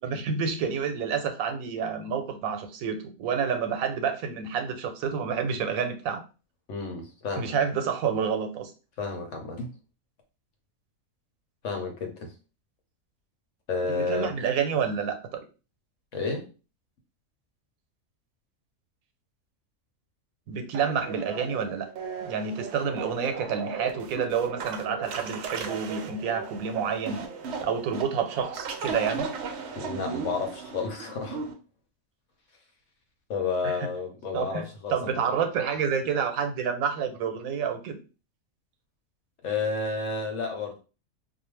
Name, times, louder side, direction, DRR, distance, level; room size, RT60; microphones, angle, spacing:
voice 1, 0.0-6.2 7.4-8.7 13.9-15.4 20.5-21.9 22.2-27.3 27.6-29.3 33.6-33.9 34.3-38.0, right 6 dB, 85° right, 1.0 m, -29 dB
voice 2, 6.7-7.5 9.0-9.7 11.6-12.3 13.7-14.3 16.1-16.5 29.8-31.4 33.3-35.4 39.4-40.8, left 4 dB, 65° left, 1.0 m, -31 dB
sound 1, 20.7-31.5, right 5 dB, 65° right, 0.7 m, -36 dB
2.4 x 2.1 x 3.1 m
omnidirectional pair, 1.4 m